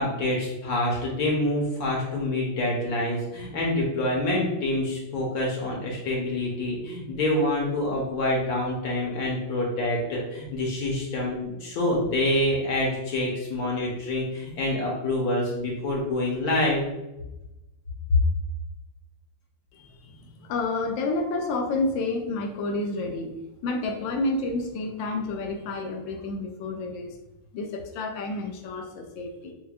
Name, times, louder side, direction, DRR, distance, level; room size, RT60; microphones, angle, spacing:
voice 1, 0.0-16.8, left 1 dB, 60° left, -2 dB, 1.1 m, -26 dB
voice 2, 19.7-23.3 23.6-27.2 27.5-29.5, left 2 dB, 75° left, 3 dB, 1.2 m, -30 dB
6.2 x 2.2 x 2.3 m, 0.98 s
omnidirectional pair, 2.3 m